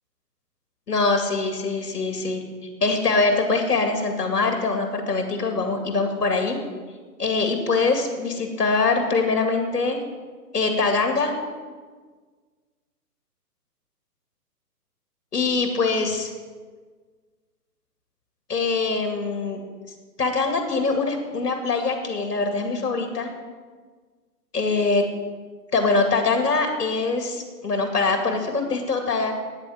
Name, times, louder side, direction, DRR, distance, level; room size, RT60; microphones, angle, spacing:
voice 1, 0.9-2.4 2.8-6.6 7.2-10.0 10.5-11.3 15.3-16.3 18.5-19.6 20.2-23.3 24.5-25.1 25.7-29.3, left 3 dB, 70° left, 5 dB, 2.3 m, -23 dB
9.6 x 8.0 x 9.3 m, 1.5 s
figure-of-eight pair, 130°, 48 cm